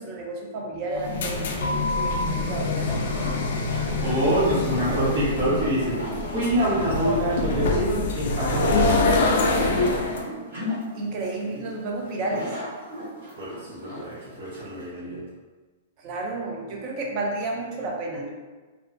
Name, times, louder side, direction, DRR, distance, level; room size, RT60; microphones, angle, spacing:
voice 1, 0.0-3.3 4.8-5.1 10.9-12.6 16.0-18.3, right 2 dB, 25° right, -1 dB, 0.4 m, -32 dB
sound 1, 0.9-10.2, left 3 dB, 55° left, 0.3 m, -25 dB
sound 2, 2.8-14.9, left 1 dB, 85° right, 1.3 m, -38 dB
voice 2, 4.0-6.0 6.3-10.0 13.4-15.2, right 1 dB, 45° right, -8 dB, 1.1 m, -26 dB
2.3 x 2.2 x 2.5 m, 1.3 s
hypercardioid pair, 175°, 0 cm